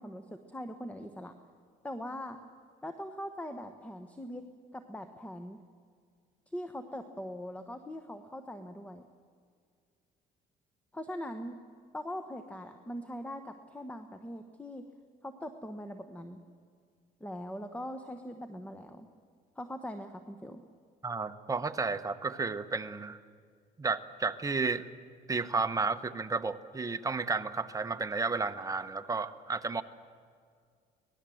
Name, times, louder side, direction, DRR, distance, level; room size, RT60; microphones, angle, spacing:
voice 1, 0.0-1.3 1.8-2.4 2.8-5.6 6.5-9.1 10.9-11.6 11.9-14.8 15.2-16.4 17.2-19.1 19.6-20.6, equal, 10° left, 8 dB, 1.2 m, -41 dB
voice 2, 21.0-23.2 23.8-24.8 25.3-29.8, right 4 dB, 20° right, 9 dB, 1.0 m, -32 dB
24.5 x 19.0 x 7.8 m, 2.1 s
cardioid pair, 110°, 17 cm